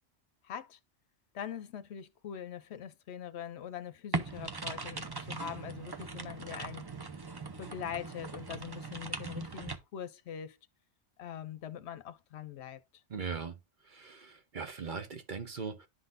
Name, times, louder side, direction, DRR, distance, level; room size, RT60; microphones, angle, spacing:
voice 1, 0.4-0.8 1.3-6.8 7.6-10.6 11.2-13.0, left 9 dB, 70° left, 0.8 m, -43 dB
sound 1, 4.1-9.8, right 3 dB, 25° right, 0.6 m, -40 dB
voice 2, 13.1-13.6 13.8-15.9, right 5 dB, 45° right, 0.9 m, -40 dB
11.5 x 3.9 x 2.5 m
omnidirectional pair, 1.2 m